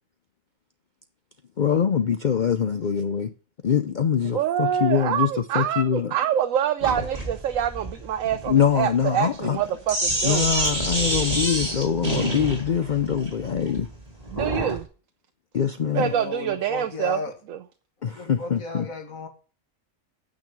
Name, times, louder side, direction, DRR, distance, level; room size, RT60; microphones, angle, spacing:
voice 1, 1.6-3.3 3.6-5.3 5.5-6.1 8.5-9.6 10.2-13.9 15.5-16.1 18.0-18.9, left 8 dB, 50° left, 0.5 m, -23 dB
voice 2, 4.3-10.5 14.3-14.9 15.9-17.2 17.5-17.6, right 10 dB, 75° right, 1.1 m, -26 dB
Sink (filling or washing), 6.8-14.8, right 1 dB, 25° right, 3.0 m, -28 dB
voice 3, 15.9-17.4 18.0-19.3, left 4 dB, 75° left, 2.3 m, -35 dB
9.2 x 6.5 x 7.4 m
omnidirectional pair, 1.5 m